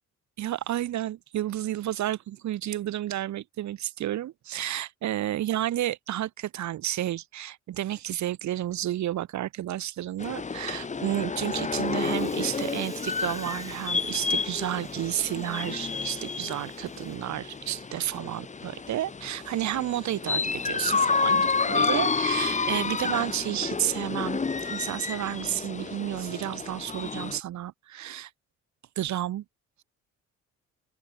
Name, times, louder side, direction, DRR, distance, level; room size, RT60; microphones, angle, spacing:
voice 1, 0.4-28.3 29.0-29.4, right 13 dB, 70° right, 1.1 m, -31 dB
sound 1, 10.2-27.4, left 4 dB, 25° left, 1.1 m, -30 dB
Water tap faucet / Sink (filling or washing), 11.8-18.4 18.8-19.1 19.4-19.5 19.9-20.0 21.1-21.2 21.7-21.9, right 2 dB, 10° right, 4.0 m, -52 dB
open air
cardioid pair, 90°, 30 cm